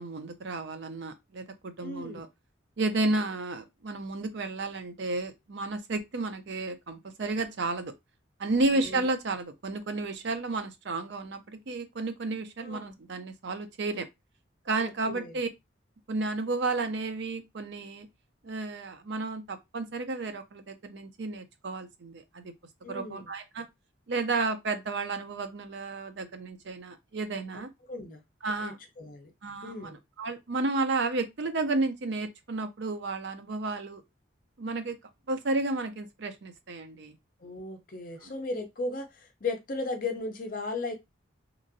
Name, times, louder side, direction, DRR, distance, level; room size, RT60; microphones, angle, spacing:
voice 1, 0.0-2.3 2.8-7.9 8.4-14.1 14.7-15.5 16.1-18.1 18.4-22.5 22.9-23.7 24.1-27.7 28.4-28.8 29.4-34.0 34.6-35.0 35.3-37.1 38.2-38.3, right 3 dB, 60° right, 0.5 m, -32 dB
voice 2, 1.8-2.2 8.8-9.0 12.6-13.0 14.8-15.4 22.8-23.3 27.9-28.2 28.6-29.3 29.6-30.0 37.4-40.9, left 3 dB, 45° left, 0.5 m, -36 dB
2.9 x 2.5 x 2.6 m
head